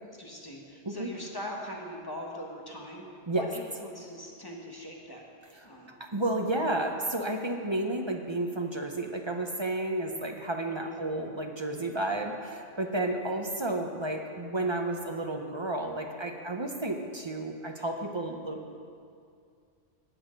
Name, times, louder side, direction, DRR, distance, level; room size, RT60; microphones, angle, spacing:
voice 1, 0.2-3.0 3.3-5.2 5.6-5.9 10.7-11.0 13.0-13.3, left 1 dB, 20° left, -1 dB, 1.4 m, -42 dB
voice 2, 6.0-18.8, right 2 dB, 30° right, 3 dB, 0.7 m, -32 dB
18.0 x 6.4 x 5.2 m, 2.3 s
omnidirectional pair, 1.1 m